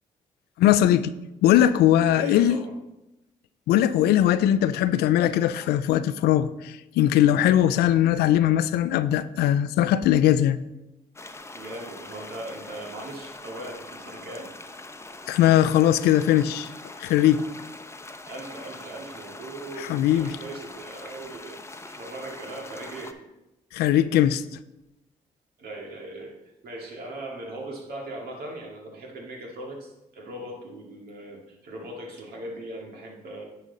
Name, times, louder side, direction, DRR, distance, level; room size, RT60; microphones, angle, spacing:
voice 1, 0.6-1.1 1.4-2.6 3.7-10.6 15.3-16.7 17.0-17.4 19.8-20.3 23.7-24.4, left 11 dB, 85° left, 0.4 m, -20 dB
voice 2, 2.1-2.7 5.6-5.7 11.5-14.5 18.3-23.3 25.6-26.4 26.6-33.4, right 1 dB, 70° right, 2.2 m, -39 dB
sound 1, 11.2-23.1, left 2 dB, 15° left, 0.8 m, -43 dB
9.9 x 5.1 x 4.0 m
supercardioid pair, 55°, 16 cm